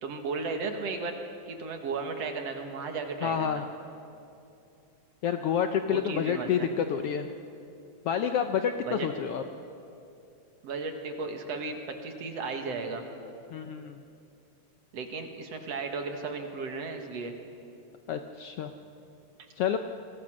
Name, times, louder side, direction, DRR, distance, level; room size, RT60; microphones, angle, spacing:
voice 1, 0.0-1.2 1.5-3.7 5.9-6.7 8.8-9.1 10.6-13.0 14.9-17.4, right 4 dB, 60° right, 5 dB, 2.7 m, -35 dB
voice 2, 3.2-3.6 5.2-7.3 8.0-9.4 13.5-14.0 18.1-18.7 19.6-19.8, left 8 dB, 70° left, 7 dB, 1.4 m, -28 dB
27.5 x 21.0 x 6.4 m, 2.7 s
omnidirectional pair, 3.3 m